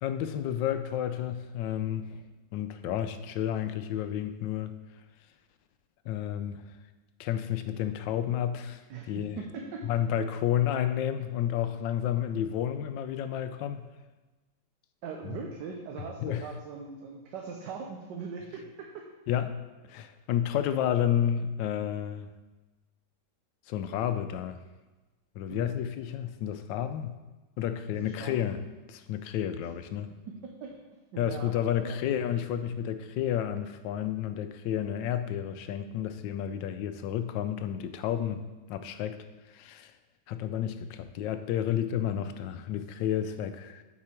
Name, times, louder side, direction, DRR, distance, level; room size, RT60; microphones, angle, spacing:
voice 1, 0.0-2.2 2.5-4.8 6.0-6.7 7.2-9.4 9.8-13.9 15.2-15.5 16.0-16.5 19.3-19.6 19.9-22.3 23.7-24.6 25.3-27.2 27.6-30.1 31.2-38.4 38.7-39.9 40.3-43.8, left 10 dB, 90° left, 10 dB, 1.3 m, -31 dB
voice 2, 9.5-9.9 15.0-18.6 25.5-25.8 27.9-28.6 30.6-30.7 31.2-31.5 31.8-32.0, right 5 dB, 75° right, 0 dB, 1.3 m, -40 dB
8.5 x 4.8 x 4.4 m, 1.2 s
omnidirectional pair, 1.9 m